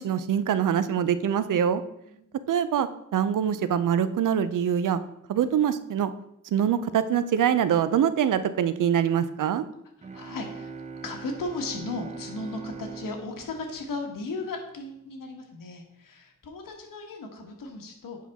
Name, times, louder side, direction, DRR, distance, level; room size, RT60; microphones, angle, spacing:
voice 1, 0.0-1.8 2.5-5.0 5.3-6.1 6.5-9.6, right 9 dB, 70° right, 13 dB, 0.6 m, -24 dB
sound 1, 10.0-14.7, right 5 dB, 20° right, 0.6 m, -42 dB
voice 2, 10.1-10.7 11.0-18.2, left 3 dB, 85° left, 2 dB, 1.4 m, -36 dB
8.4 x 5.7 x 3.5 m, 0.79 s
wide cardioid pair, 150°, 32 cm